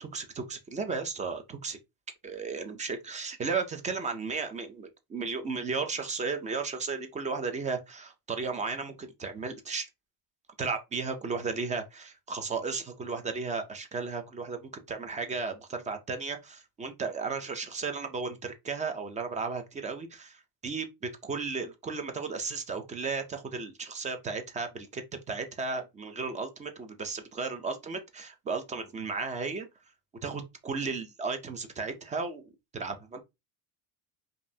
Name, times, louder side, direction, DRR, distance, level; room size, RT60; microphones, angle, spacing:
voice 1, 0.0-1.8 2.2-9.9 10.6-29.7 30.2-33.2, right 4 dB, 15° right, 0.4 m, -34 dB
5.1 x 2.7 x 2.7 m
cardioid pair, 160°, 46 cm